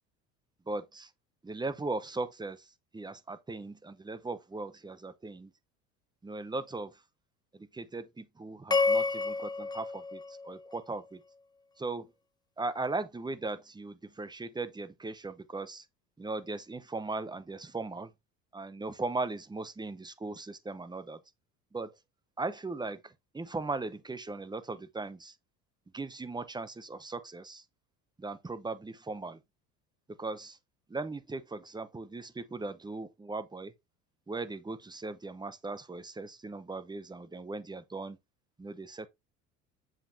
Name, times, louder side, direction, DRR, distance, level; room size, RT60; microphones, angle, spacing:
voice 1, 0.7-1.1 1.4-5.5 6.2-7.0 7.5-11.2 11.8-12.1 12.6-15.9 16.2-18.1 18.5-21.2 21.7-22.0 22.4-25.3 25.9-27.6 28.2-29.4 30.2-30.6 30.9-33.7 34.3-38.2 38.6-39.1, right 3 dB, 10° right, 0.8 m, -38 dB
sound 1, 8.7-11.1, left 4 dB, 10° left, 0.5 m, -30 dB
7.3 x 5.1 x 2.7 m
hypercardioid pair, 75°, 38 cm